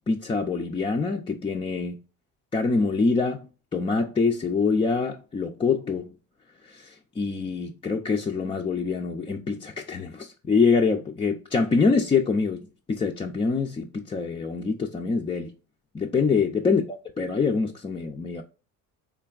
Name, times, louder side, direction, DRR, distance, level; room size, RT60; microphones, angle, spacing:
voice 1, 0.1-2.0 2.5-6.2 6.7-6.9 7.2-15.5 15.9-18.4, left 4 dB, 15° left, 0.3 m, -25 dB
3.8 x 3.4 x 2.3 m
cardioid pair, 110°, 36 cm